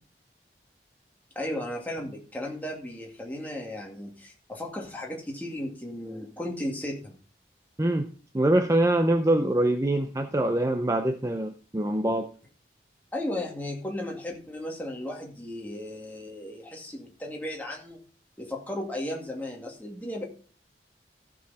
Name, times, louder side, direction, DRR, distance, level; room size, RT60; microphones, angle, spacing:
voice 1, 1.4-7.2 13.1-18.0 18.4-20.2, left 1 dB, 10° left, -1 dB, 2.2 m, -35 dB
voice 2, 7.8-8.1 8.3-12.3, right 1 dB, 20° right, 7 dB, 0.5 m, -24 dB
14.0 x 6.3 x 4.2 m, 0.39 s
head